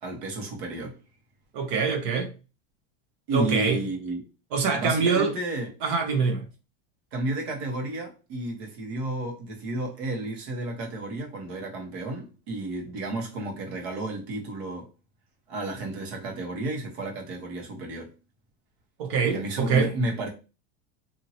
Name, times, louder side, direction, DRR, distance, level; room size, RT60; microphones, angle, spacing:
voice 1, 0.0-1.0 3.3-4.2 4.7-5.7 7.1-14.9 15.5-18.1 19.3-20.3, right 2 dB, 70° right, 1.3 m, -32 dB
voice 2, 1.5-2.3 3.3-3.8 4.5-5.3 5.8-6.4 19.0-19.9, right 5 dB, 50° right, 0.9 m, -24 dB
2.8 x 2.8 x 2.8 m
supercardioid pair, 180°, 34 cm